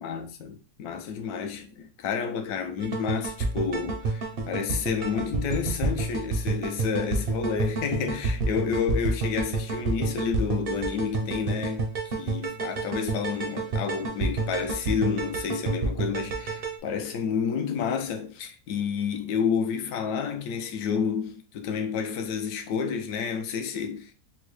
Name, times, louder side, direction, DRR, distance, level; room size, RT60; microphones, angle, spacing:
voice 1, 0.0-11.9 12.2-24.1, left 6 dB, 70° left, 1.0 m, -30 dB
sound 1, 2.8-16.8, right 3 dB, 65° right, 0.5 m, -29 dB
4.3 x 2.0 x 3.1 m
omnidirectional pair, 1.8 m